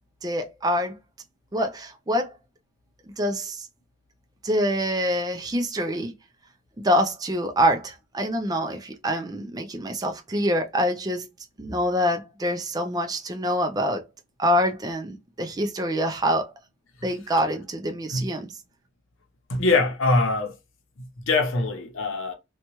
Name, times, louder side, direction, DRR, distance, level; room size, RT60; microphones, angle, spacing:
voice 1, 0.2-1.0 1.5-2.4 3.2-3.7 4.4-6.1 6.8-11.3 11.6-14.0 14.4-16.5 17.0-18.5, equal, 20° right, 0.4 m, -25 dB
voice 2, 19.5-20.6 21.0-22.3, left 3 dB, 70° left, 0.7 m, -23 dB
2.7 x 2.2 x 2.9 m
head